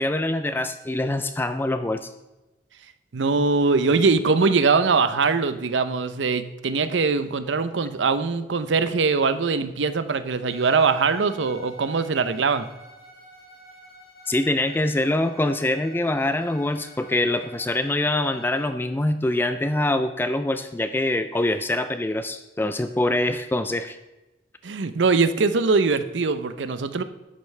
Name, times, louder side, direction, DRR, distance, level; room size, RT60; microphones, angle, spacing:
voice 1, 0.0-2.1 14.3-24.0, left 1 dB, 10° left, 10 dB, 0.3 m, -24 dB
voice 2, 3.1-12.7 24.6-27.0, right 4 dB, 90° right, 12 dB, 0.6 m, -22 dB
Bowed string instrument, 10.5-18.8, equal, 65° left, 3.5 m, -48 dB
11.0 x 8.3 x 3.3 m, 1.0 s
head